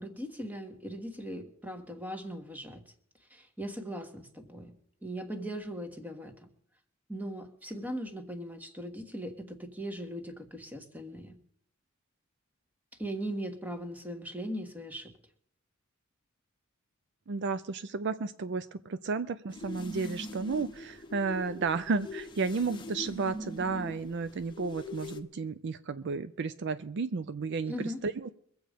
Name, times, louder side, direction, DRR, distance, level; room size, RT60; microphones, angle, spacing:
voice 1, 0.0-2.8 3.3-4.8 5.0-6.5 7.1-11.4 13.0-15.1 27.6-28.0, equal, 10° right, 6 dB, 1.5 m, -39 dB
voice 2, 17.3-28.3, right 4 dB, 55° right, 12 dB, 0.5 m, -33 dB
sound 1, 19.5-25.2, left 1 dB, 25° left, 1.0 m, -42 dB
23.0 x 7.8 x 5.1 m, 0.65 s
head